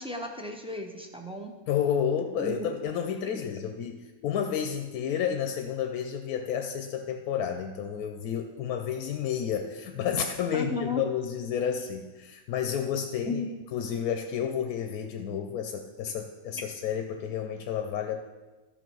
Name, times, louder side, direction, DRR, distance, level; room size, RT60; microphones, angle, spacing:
voice 1, 0.0-1.5 2.4-2.7 3.2-3.4 10.5-11.0 13.2-13.5, left 3 dB, 5° right, 2 dB, 0.4 m, -34 dB
voice 2, 1.7-13.4 13.7-18.2, left 8 dB, 85° left, 5 dB, 1.1 m, -31 dB
12.5 x 6.0 x 4.6 m, 1.2 s
omnidirectional pair, 1.5 m